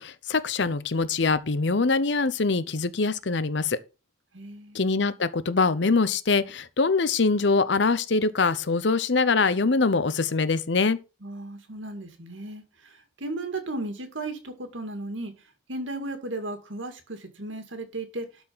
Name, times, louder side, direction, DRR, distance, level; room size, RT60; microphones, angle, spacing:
voice 1, 0.0-3.8 4.7-11.0, left 4 dB, 70° left, 0.7 m, -23 dB
voice 2, 4.3-4.8 11.2-15.3 15.7-18.3, right 2 dB, 85° right, 2.1 m, -35 dB
12.0 x 4.5 x 5.6 m
head